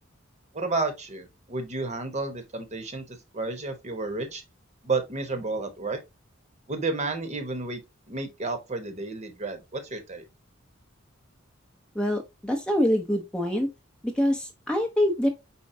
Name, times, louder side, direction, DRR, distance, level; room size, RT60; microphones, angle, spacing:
voice 1, 0.5-4.4 4.8-6.0 6.7-7.8 8.1-10.2, right 3 dB, 35° right, 1.0 m, -31 dB
voice 2, 11.9-13.7 14.0-15.3, left 1 dB, 5° left, 0.6 m, -25 dB
4.4 x 4.3 x 2.6 m
head